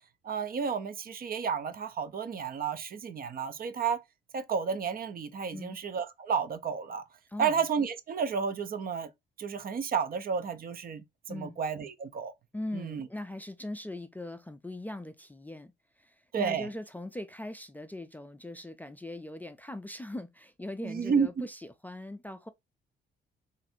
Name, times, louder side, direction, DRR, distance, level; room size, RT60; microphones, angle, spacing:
voice 1, 0.2-4.0 4.3-7.0 7.4-9.1 9.4-12.3 12.7-13.1 16.3-16.7 20.8-21.5, right 6 dB, 50° right, 0.6 m, -31 dB
voice 2, 7.3-7.7 11.3-11.6 12.5-22.5, left 1 dB, 10° left, 0.4 m, -41 dB
2.6 x 2.6 x 4.2 m
cardioid pair, 90°, 20 cm